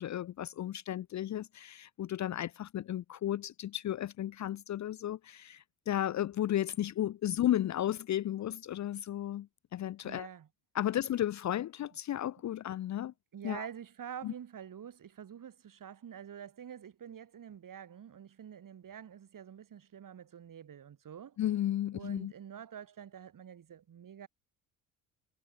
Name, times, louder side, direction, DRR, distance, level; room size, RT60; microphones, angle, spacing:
voice 1, 0.0-9.5 9.7-10.3 10.7-13.1 13.4-13.7 14.2-14.3 21.4-22.3, left 12 dB, 40° left, 0.7 m, -34 dB
voice 2, 10.0-10.5 13.0-21.4 21.9-24.3, right 8 dB, 50° right, 6.8 m, -47 dB
hypercardioid pair, 65°, 42 cm